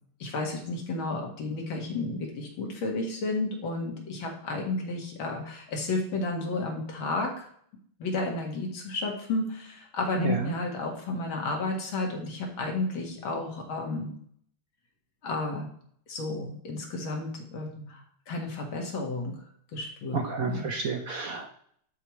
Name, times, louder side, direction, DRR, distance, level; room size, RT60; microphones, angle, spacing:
voice 1, 0.2-7.5 8.0-14.1 15.2-15.7 16.1-18.0 18.3-19.4 19.7-20.7, left 2 dB, 65° left, 1 dB, 2.4 m, -32 dB
voice 2, 10.2-10.5 20.1-21.6, right 5 dB, 65° right, 3 dB, 0.9 m, -31 dB
12.0 x 4.7 x 3.1 m, 0.63 s
omnidirectional pair, 2.4 m